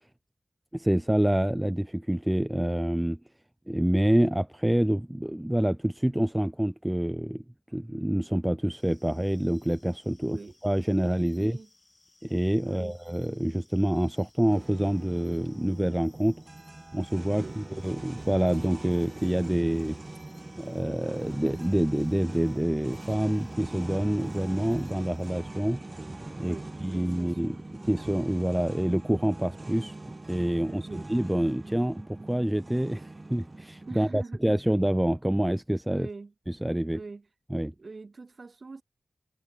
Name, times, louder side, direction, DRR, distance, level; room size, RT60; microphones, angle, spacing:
voice 1, 0.7-3.2 3.7-7.4 7.7-10.4 10.6-11.6 12.2-16.4 16.9-20.0 20.6-25.8 26.4-26.6 26.8-27.6 27.9-30.0 30.3-36.1 36.5-37.0 37.5-37.7, right 1 dB, 10° right, 0.3 m, -27 dB
sound 1, 8.7-25.3, left 2 dB, 30° left, 5.3 m, -62 dB
voice 2, 11.3-11.7 12.6-13.0 17.3-17.6 26.4-27.6 30.6-31.1 33.9-34.4 35.9-36.3 36.9-37.3 37.8-38.8, right 3 dB, 55° right, 2.9 m, -44 dB
sound 2, 14.5-34.2, right 2 dB, 30° right, 1.2 m, -42 dB
wide cardioid pair, 75°, 0 cm